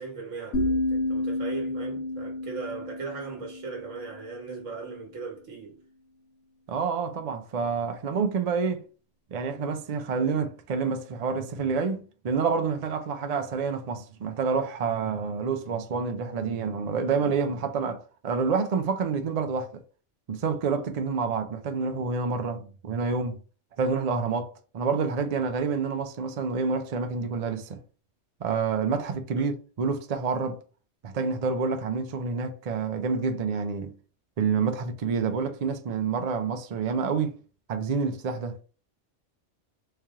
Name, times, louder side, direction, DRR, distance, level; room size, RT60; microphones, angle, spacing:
voice 1, 0.0-5.8 28.9-29.0 29.3-29.5, right 4 dB, 75° right, 1.5 m, -38 dB
sound 1, 0.5-4.4, left 1 dB, 80° left, 1.5 m, -30 dB
voice 2, 6.7-8.8 9.3-19.8 20.3-23.4 23.8-27.8 28.4-30.6 31.0-33.9 34.4-37.4 37.7-38.6, right 5 dB, 55° right, 0.4 m, -28 dB
3.3 x 2.8 x 3.6 m
omnidirectional pair, 1.3 m